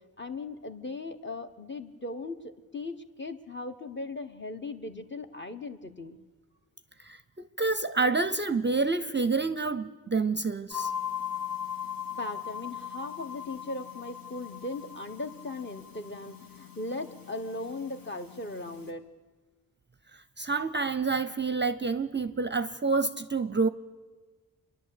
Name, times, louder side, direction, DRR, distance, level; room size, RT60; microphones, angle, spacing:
voice 1, 0.0-6.2 12.2-19.0, left 2 dB, 30° left, 1.1 m, -38 dB
voice 2, 7.0-10.9 20.4-23.7, right 4 dB, 30° right, 0.5 m, -28 dB
sound 1, 10.7-18.9, left 9 dB, 65° left, 2.2 m, -39 dB
28.0 x 11.0 x 8.4 m
wide cardioid pair, 115°, 37 cm